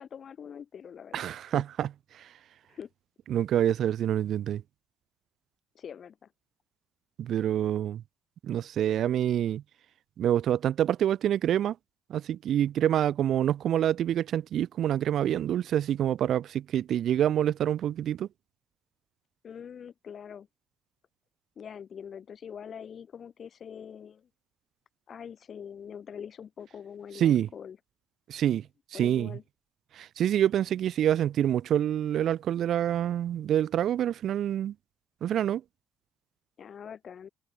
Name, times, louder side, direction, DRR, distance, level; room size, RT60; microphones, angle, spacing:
voice 1, 0.0-1.6 2.7-2.9 5.7-6.3 19.4-20.5 21.6-24.3 25.1-27.8 28.9-29.4 36.6-37.3, left 7 dB, 45° left, 0.6 m, -44 dB
voice 2, 1.1-1.9 2.1-2.3 3.3-4.6 7.2-8.0 8.4-9.6 10.2-11.8 12.1-18.3 27.2-27.5 28.3-28.7 28.9-29.4 29.9-34.7 35.2-35.6, right 10 dB, 60° right, 0.3 m, -26 dB
cardioid pair, 100°, 0 cm